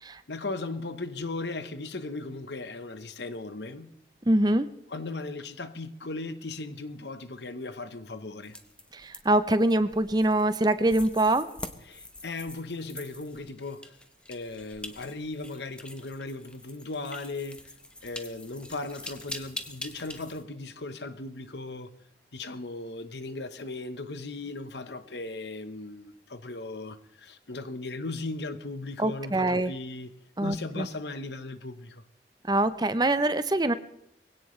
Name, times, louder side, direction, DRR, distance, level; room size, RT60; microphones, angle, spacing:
voice 1, 0.3-3.9 4.9-8.5 11.9-14.0 14.3-17.7 18.0-21.9 22.3-30.1 30.4-32.0, left 3 dB, 75° left, 1.1 m, -37 dB
voice 2, 4.3-4.7 8.9-11.5 29.0-29.7 30.4-30.9 32.5-33.7, right 1 dB, 25° right, 0.7 m, -24 dB
sound 1, 8.4-20.4, left 1 dB, 5° left, 1.0 m, -44 dB
22.0 x 17.0 x 3.3 m
head